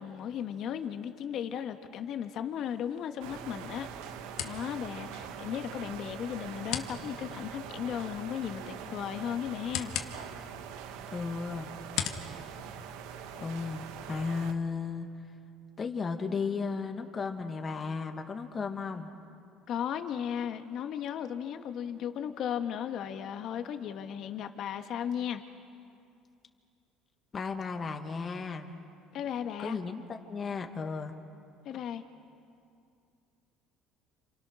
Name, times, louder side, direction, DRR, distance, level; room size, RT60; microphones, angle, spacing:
voice 1, 0.0-3.9 4.4-9.9 19.7-25.4 29.1-29.8 31.6-32.0, left 9 dB, 60° left, 6 dB, 1.9 m, -35 dB
sound 1, 2.6-13.6, left 10 dB, 75° left, 2.0 m, -43 dB
sound 2, 3.2-14.5, right 8 dB, 85° right, 1.7 m, -43 dB
voice 2, 11.1-11.7 13.3-15.1 15.8-19.1 27.3-28.9 29.6-31.1, left 5 dB, 30° left, 4 dB, 2.1 m, -35 dB
29.0 x 28.0 x 6.5 m, 2.5 s
cardioid pair, 110°, 0 cm